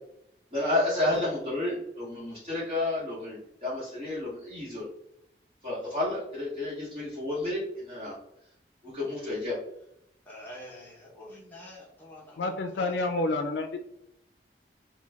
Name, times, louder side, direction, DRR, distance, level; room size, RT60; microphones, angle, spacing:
voice 1, 0.5-4.9 5.6-8.2 8.8-9.6, left 2 dB, 30° right, -8 dB, 1.1 m, -31 dB
voice 2, 10.3-12.4 12.8-12.9, left 1 dB, 10° left, -5 dB, 0.9 m, -46 dB
voice 3, 12.4-13.8, left 2 dB, 80° left, 5 dB, 0.4 m, -29 dB
3.1 x 2.2 x 3.4 m, 0.77 s
head